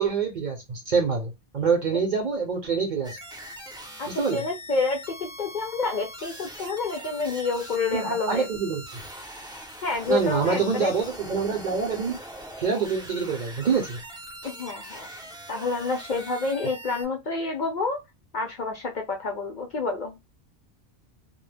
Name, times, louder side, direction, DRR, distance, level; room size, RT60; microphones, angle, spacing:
voice 1, 0.0-3.2 4.1-4.4 7.9-8.8 10.1-12.1 12.6-14.0, right 5 dB, 50° right, 0.6 m, -26 dB
sound 1, 3.0-17.0, equal, 5° right, 0.4 m, -42 dB
voice 2, 4.0-8.5 9.8-10.9 14.4-15.1 15.5-18.0 18.3-20.2, left 3 dB, 55° left, 0.6 m, -28 dB
2.2 x 2.1 x 3.2 m
omnidirectional pair, 1.2 m